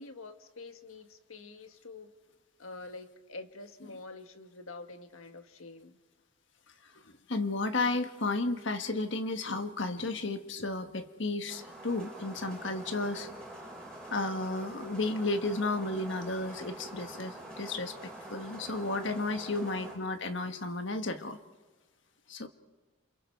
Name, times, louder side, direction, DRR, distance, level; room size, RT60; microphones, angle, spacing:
voice 1, 0.0-2.1 2.6-6.0 19.4-19.8, left 3 dB, 85° left, 7 dB, 1.6 m, -47 dB
voice 2, 7.3-13.3 14.1-21.4 22.3-22.5, left 2 dB, 60° left, 8 dB, 1.5 m, -33 dB
sound 1, 11.5-20.0, right 1 dB, 5° left, 7.3 m, -46 dB
28.0 x 28.0 x 4.6 m, 1.3 s
head